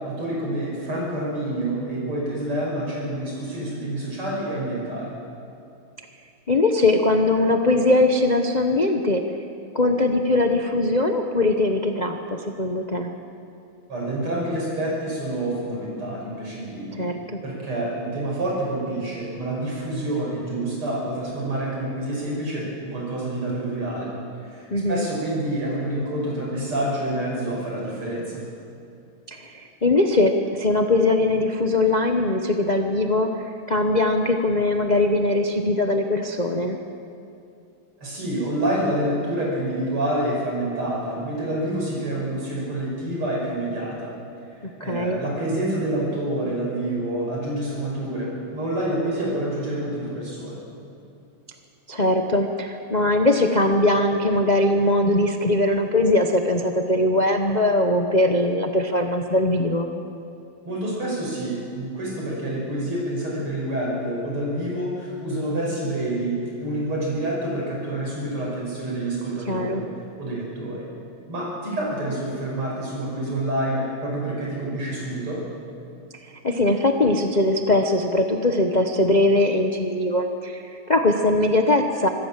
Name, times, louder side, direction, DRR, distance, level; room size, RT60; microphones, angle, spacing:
voice 1, 0.0-5.1 13.9-17.1 17.4-24.1 24.4-28.4 38.0-44.1 44.8-50.6 60.6-69.8 70.2-70.9 71.3-75.4, right 1 dB, 85° right, -3 dB, 6.8 m, -27 dB
voice 2, 6.5-9.2 9.7-13.1 16.9-17.4 24.7-25.1 29.3-36.8 44.8-45.2 51.9-59.9 69.4-69.8 76.4-82.1, left 2 dB, 40° left, 4 dB, 0.6 m, -21 dB
25.5 x 14.5 x 7.5 m, 2.6 s
omnidirectional pair, 2.4 m